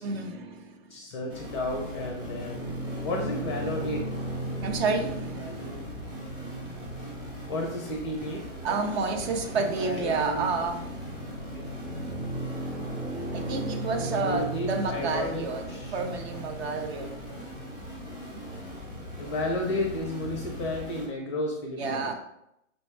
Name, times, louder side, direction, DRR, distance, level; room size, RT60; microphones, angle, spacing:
voice 1, 0.0-0.7 4.6-5.6 8.6-11.2 13.3-17.4 21.8-22.1, right 4 dB, 50° right, 0.6 m, -30 dB
voice 2, 0.9-4.1 5.4-5.9 6.8-6.9 7.5-8.4 9.6-10.5 11.5-11.6 12.1-12.4 14.0-16.0 19.2-22.1, left 1 dB, 25° left, 0.4 m, -33 dB
sound 1, 1.3-21.1, equal, 10° right, 0.7 m, -41 dB
sound 2, 1.7-20.7, right 1 dB, 85° right, 1.1 m, -38 dB
5.2 x 2.2 x 3.1 m
hypercardioid pair, 135°, 40 cm